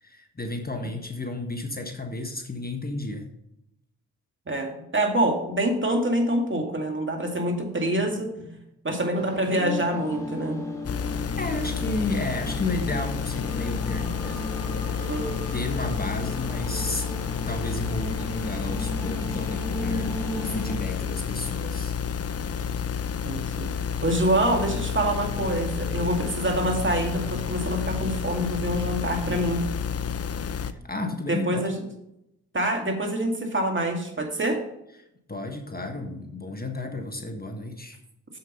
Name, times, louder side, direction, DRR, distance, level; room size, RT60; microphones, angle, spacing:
voice 1, 0.0-3.2 8.0-8.5 11.4-15.1 15.5-17.1 17.5-21.9 30.5-31.6 35.3-38.0, left 2 dB, 25° left, 5 dB, 1.4 m, -33 dB
voice 2, 4.5-8.3 8.8-10.6 15.1-15.3 23.2-23.7 24.0-29.7 31.3-31.7 32.5-34.6, right 1 dB, 30° right, 3 dB, 2.2 m, -26 dB
sound 1, 9.1-20.8, left 1 dB, 10° left, 2.8 m, -36 dB
sound 2, 10.8-30.7, left 7 dB, 40° left, 0.7 m, -30 dB
7.4 x 6.8 x 5.4 m, 0.82 s
supercardioid pair, 45°, 38 cm